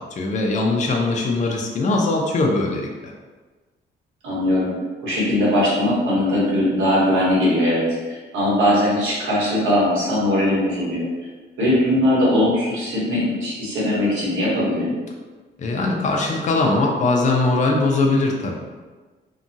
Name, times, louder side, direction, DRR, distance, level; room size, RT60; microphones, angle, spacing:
voice 1, 0.2-3.1 15.6-18.6, left 2 dB, 40° left, 0 dB, 0.5 m, -21 dB
voice 2, 4.2-4.7 5.0-11.1 11.6-14.9, left 1 dB, 85° right, -7 dB, 1.2 m, -20 dB
2.7 x 2.2 x 2.6 m, 1.3 s
cardioid pair, 90°, 20 cm